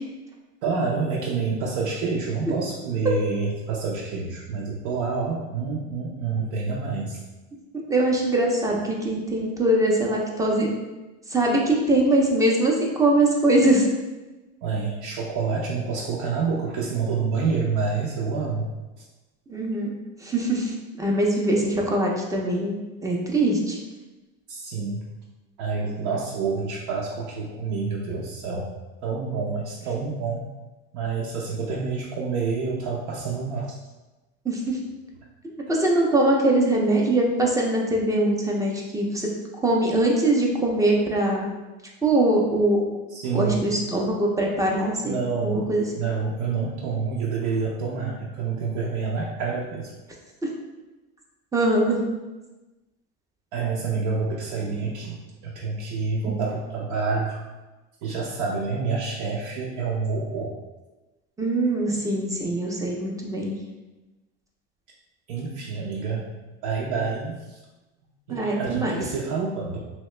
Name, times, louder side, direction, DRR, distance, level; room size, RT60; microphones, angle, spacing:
voice 1, 0.6-7.2 14.6-18.7 24.5-25.0 25.6-28.7 29.0-30.5 30.9-33.7 43.1-43.7 45.0-49.9 53.5-57.4 58.0-60.5 65.3-66.3 66.6-67.6 68.3-69.8, right 4 dB, 80° right, -3 dB, 0.6 m, -28 dB
voice 2, 7.9-10.7 11.3-13.9 19.5-19.9 20.2-22.7 23.0-23.8 34.5-34.8 35.7-39.3 39.6-41.5 42.0-42.9 43.3-45.2 45.4-45.9 51.5-52.0 61.4-63.6 68.3-69.0, right 1 dB, 10° right, -1 dB, 0.4 m, -22 dB
3.1 x 2.8 x 3.2 m, 1.1 s
cardioid pair, 135°, 33 cm